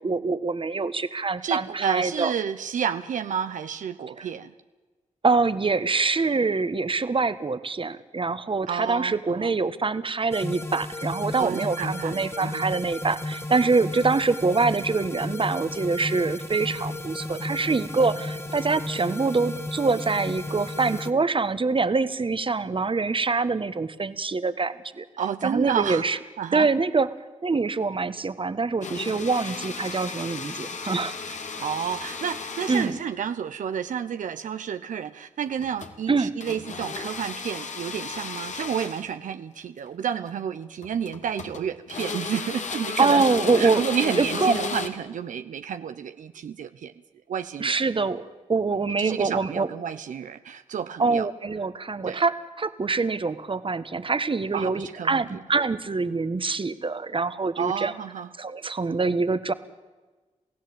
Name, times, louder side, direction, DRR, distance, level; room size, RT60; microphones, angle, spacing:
voice 1, 0.0-2.3 4.2-4.3 5.2-25.0 25.4-26.2 26.5-27.1 27.4-31.4 32.7-33.0 36.1-36.3 43.0-43.8 44.2-44.5 47.6-49.7 51.0-57.9 58.4-59.5, right 4 dB, 40° right, 13 dB, 1.4 m, -25 dB
voice 2, 1.4-4.5 8.7-9.5 11.4-12.7 25.2-26.0 26.4-26.7 31.6-43.2 43.6-46.9 47.3-47.8 49.0-51.3 52.0-52.2 54.5-55.4 57.6-58.3, right 8 dB, 85° right, 10 dB, 0.8 m, -30 dB
sound 1, 10.3-21.1, left 2 dB, 20° left, 2.0 m, -34 dB
sound 2, 28.8-33.2 35.5-36.0 36.4-39.1 40.1-40.3 40.8-41.6 41.9-44.9, left 4 dB, 70° left, 2.4 m, -34 dB
28.5 x 16.0 x 8.8 m, 1.3 s
cardioid pair, 50°, 13 cm